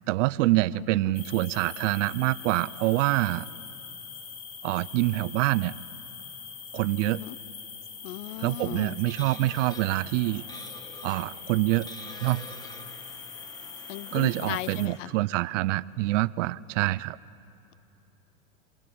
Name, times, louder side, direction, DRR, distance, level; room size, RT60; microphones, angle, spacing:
voice 1, 0.1-3.5 4.6-5.7 6.7-7.2 8.4-10.4 11.0-11.9 12.2-12.4 14.1-17.2, right 18 dB, 60° right, 19 dB, 0.6 m, -26 dB
voice 2, 0.7-1.1 7.0-7.4 8.0-9.0 13.9-15.1, left 15 dB, 60° left, 21 dB, 0.7 m, -37 dB
sound 1, 1.1-14.9, left 6 dB, 35° left, 3.0 m, -43 dB
sound 2, 8.3-15.0, left 1 dB, 10° left, 1.6 m, -47 dB
26.0 x 18.5 x 8.6 m, 3.0 s
hypercardioid pair, 120°, 43 cm